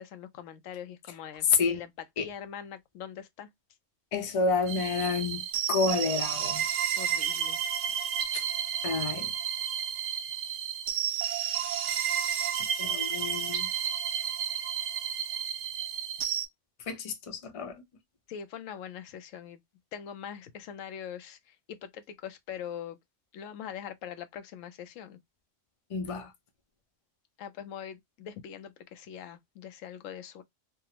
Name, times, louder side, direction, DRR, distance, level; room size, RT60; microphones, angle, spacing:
voice 1, 0.0-1.9 2.2-3.5 7.0-7.6 18.3-19.6 19.9-23.0 23.3-25.2 27.4-30.4, left 9 dB, 85° left, 1.0 m, -42 dB
voice 2, 1.4-1.8 2.2-2.3 4.1-6.6 8.3-8.4 8.8-9.3 11.1-11.3 12.8-13.7 16.8-17.8 25.9-26.3, left 5 dB, 40° left, 0.5 m, -29 dB
sound 1, 4.7-16.5, right 9 dB, 75° right, 1.0 m, -31 dB
3.5 x 2.0 x 2.8 m
omnidirectional pair, 1.3 m